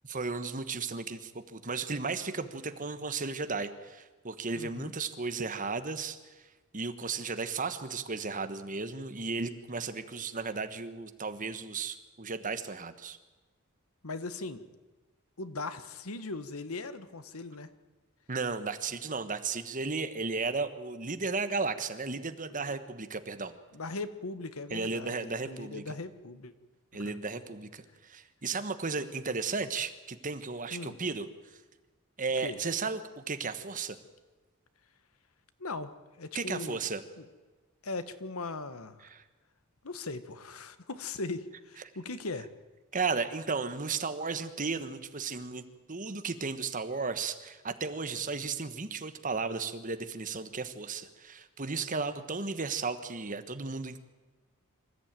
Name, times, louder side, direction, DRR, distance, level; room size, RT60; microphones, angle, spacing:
voice 1, 0.0-6.5 6.7-13.2 18.3-23.5 24.7-25.9 26.9-31.3 32.2-34.0 36.3-37.0 39.0-39.2 42.9-45.6 45.9-54.0, right 4 dB, 35° right, 10 dB, 1.3 m, -34 dB
voice 2, 4.5-4.9 14.0-14.6 15.4-17.7 22.5-22.8 23.7-26.5 30.7-31.0 32.4-32.6 35.6-35.9 36.2-36.8 37.8-39.0 39.8-42.5, left 3 dB, 80° left, 12 dB, 1.4 m, -39 dB
25.5 x 14.5 x 9.0 m, 1.2 s
head